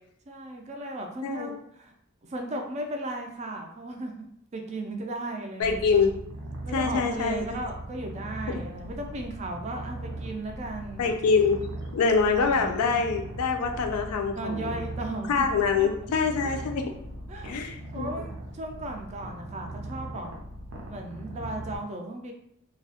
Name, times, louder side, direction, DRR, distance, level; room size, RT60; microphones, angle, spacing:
voice 1, 0.3-1.9 2.3-4.1 4.5-6.0 6.6-11.0 12.5-13.0 14.4-15.5 15.8-15.9 16.4-16.6 17.3-20.3 20.9-22.3, right 1 dB, 30° right, 3 dB, 0.3 m, -36 dB
voice 2, 5.6-6.1 6.7-7.6 11.0-11.6 11.9-14.8 15.3-16.8 17.4-18.1, left 5 dB, 75° left, 4 dB, 0.4 m, -25 dB
Purr, 5.6-21.8, right 1 dB, 85° right, 0.5 m, -39 dB
2.3 x 2.0 x 2.7 m, 0.71 s
head